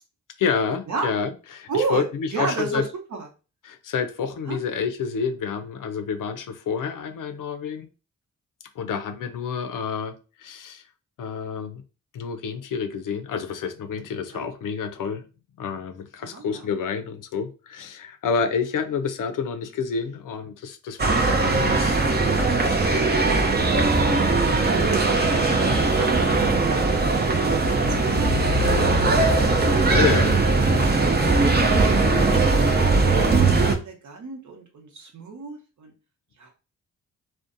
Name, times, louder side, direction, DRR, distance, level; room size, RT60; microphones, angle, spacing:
voice 1, 0.4-2.8 3.6-7.9 8.8-10.1 10.4-10.8 11.2-11.8 12.1-15.2 15.6-22.1 22.4-23.6 29.9-30.3, left 6 dB, 65° left, 0.5 m, -29 dB
voice 2, 1.7-2.8 3.1-3.3 4.5-4.6 14.3-14.5 16.2-16.7 24.4-28.9 29.7-30.1 31.0-33.3 33.8-35.9 36.4-36.5, right 4 dB, 55° right, 0.9 m, -33 dB
sound 1, 21.0-33.8, right 3 dB, 30° right, 0.6 m, -20 dB
2.5 x 2.2 x 2.6 m
supercardioid pair, 50°, 34 cm